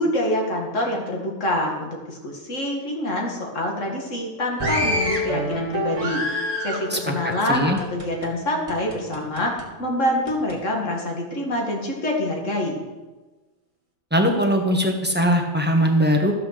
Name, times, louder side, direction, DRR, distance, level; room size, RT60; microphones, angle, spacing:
voice 1, 0.0-6.2 6.6-12.8, left 1 dB, 75° left, 0 dB, 2.3 m, -26 dB
sound 1, 4.6-8.3 8.7-9.7 10.3-10.6, equal, 25° right, 1.8 m, -27 dB
voice 2, 6.9-7.8 14.1-16.3, equal, 10° right, 2 dB, 1.2 m, -21 dB
13.5 x 5.9 x 6.6 m, 1.2 s
omnidirectional pair, 1.3 m